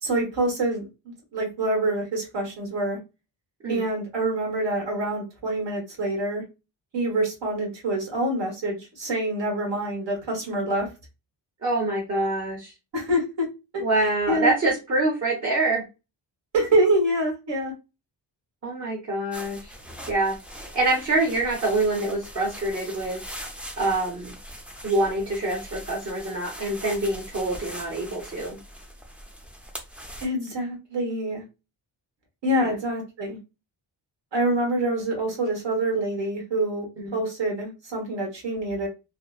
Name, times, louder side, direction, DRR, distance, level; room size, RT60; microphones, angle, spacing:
voice 1, 0.0-3.0 3.7-6.4 6.9-10.9 12.9-13.5 13.7-13.8 14.3-14.5 16.5-17.7 30.2-31.4 32.4-33.4 34.3-36.9 37.1-38.9, right 1 dB, 75° right, 1 dB, 1.3 m, -26 dB
voice 2, 11.6-12.7 13.8-15.8 18.6-19.7 20.1-23.2 23.8-24.3 24.8-28.6 32.6-32.7 37.0-37.1, right 2 dB, 35° right, -2 dB, 0.7 m, -25 dB
sound 1, 19.3-30.3, equal, 5° right, 0.4 m, -41 dB
2.8 x 2.0 x 2.2 m, 0.27 s
wide cardioid pair, 125°, 44 cm